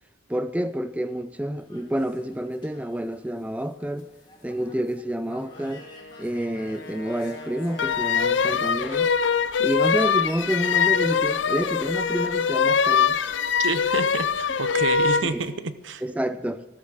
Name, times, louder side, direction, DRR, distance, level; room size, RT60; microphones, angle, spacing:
voice 1, 0.3-4.1 4.4-5.8 6.2-9.1 9.6-13.2 15.3-15.4 16.0-16.6, right 1 dB, 5° right, 0.4 m, -28 dB
sound 1, 1.6-16.1, left 2 dB, 25° left, 2.7 m, -50 dB
Wind instrument woodwind instrument, 5.2-9.5, left 1 dB, 60° left, 1.6 m, -44 dB
sound 2, 7.8-15.3, left 6 dB, 75° left, 0.6 m, -23 dB
voice 2, 13.6-16.0, right 4 dB, 80° right, 0.9 m, -29 dB
14.0 x 13.0 x 6.5 m
head